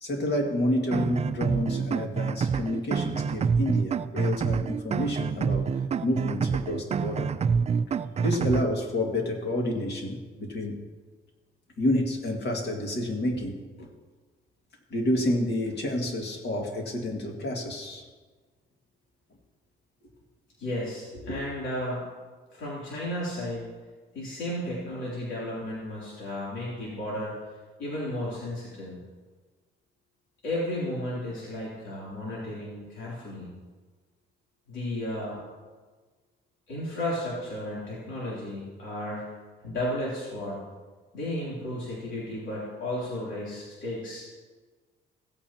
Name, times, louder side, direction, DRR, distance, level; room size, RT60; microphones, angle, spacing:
voice 1, 0.0-5.7 6.0-7.3 8.2-10.8 11.8-13.9 14.9-18.0 21.3-21.4, left 1 dB, 60° left, 1 dB, 2.1 m, -29 dB
sound 1, 0.9-8.6, right 6 dB, 35° right, 0.4 m, -27 dB
voice 2, 20.6-22.0 22.5-23.7 24.1-27.4 27.8-29.0 30.4-33.5 34.7-35.4 36.7-39.4 39.6-40.6 41.1-44.3, left 1 dB, 75° left, -7 dB, 3.1 m, -33 dB
16.0 x 8.6 x 2.9 m, 1.4 s
cardioid pair, 90°, 20 cm